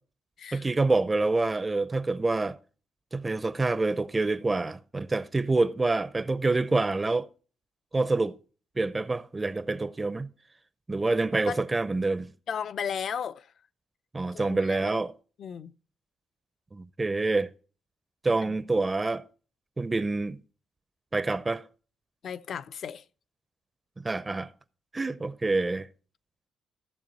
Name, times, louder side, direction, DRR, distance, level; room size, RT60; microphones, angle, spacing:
voice 1, 0.5-2.6 3.1-7.3 7.9-8.4 8.8-10.3 10.9-12.3 14.1-15.1 16.7-17.5 18.2-19.2 19.8-20.4 21.1-21.6 24.0-24.5 24.9-25.9, right 3 dB, 20° right, 0.5 m, -27 dB
voice 2, 12.5-13.5 14.3-14.9 15.4-15.7 18.4-18.5 22.2-23.0, left 7 dB, 60° left, 0.4 m, -35 dB
14.5 x 7.1 x 4.0 m
cardioid pair, 90°, 0 cm